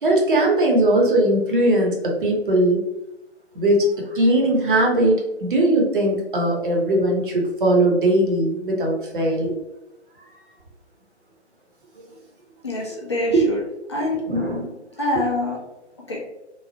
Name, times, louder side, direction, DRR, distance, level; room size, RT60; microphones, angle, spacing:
voice 1, 0.0-2.8 3.5-9.5 13.3-13.5 14.3-14.7 15.1-15.2, right 1 dB, 45° right, -1 dB, 0.8 m, -19 dB
voice 2, 12.6-13.6 13.9-14.2 15.0-15.6 16.1-16.2, left 1 dB, 25° left, -3 dB, 0.4 m, -25 dB
3.1 x 2.0 x 2.7 m, 0.95 s
figure-of-eight pair, 140°, 35 cm